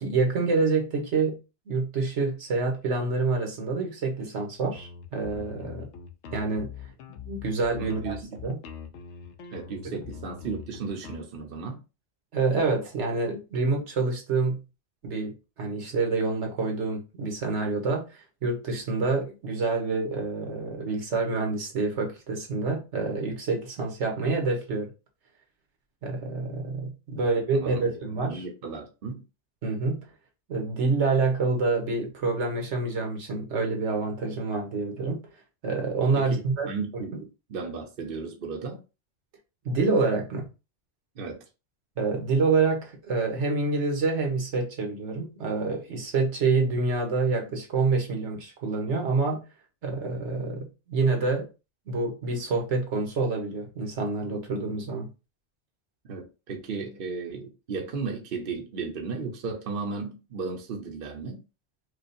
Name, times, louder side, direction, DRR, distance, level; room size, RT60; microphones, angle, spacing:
voice 1, 0.0-1.4 1.7-5.9 6.3-6.7 7.3-8.1 8.4-8.6 12.3-14.6 15.0-24.9 26.0-28.4 29.6-30.0 30.5-35.2 35.6-36.7 37.1-37.2 39.6-40.5 42.0-49.4 49.8-51.5 51.9-55.1, right 3 dB, 80° right, 1.3 m, -27 dB
sound 1, 4.7-11.2, left 7 dB, 85° left, 0.9 m, -42 dB
voice 2, 7.8-8.6 9.5-11.8 27.2-29.2 36.1-38.8 41.1-41.4 56.0-61.4, right 4 dB, 55° right, 0.9 m, -35 dB
4.8 x 2.4 x 2.6 m
omnidirectional pair, 1.2 m